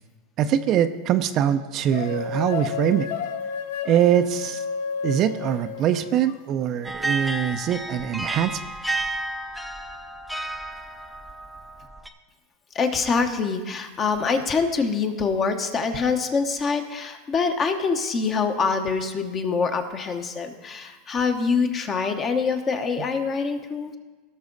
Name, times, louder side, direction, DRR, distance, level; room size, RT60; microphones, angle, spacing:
voice 1, 0.4-3.1 3.8-4.6 5.0-8.6 23.0-23.1, right 10 dB, 40° right, 10 dB, 0.5 m, -23 dB
sound 1, 1.9-6.4, left 6 dB, 75° left, 0.6 m, -31 dB
sound 2, 6.8-12.1, right 2 dB, ahead, 0.6 m, -31 dB
voice 2, 12.7-24.0, left 5 dB, 25° left, 6 dB, 1.0 m, -25 dB
17.5 x 6.2 x 4.0 m, 1.3 s
supercardioid pair, 135°, 0 cm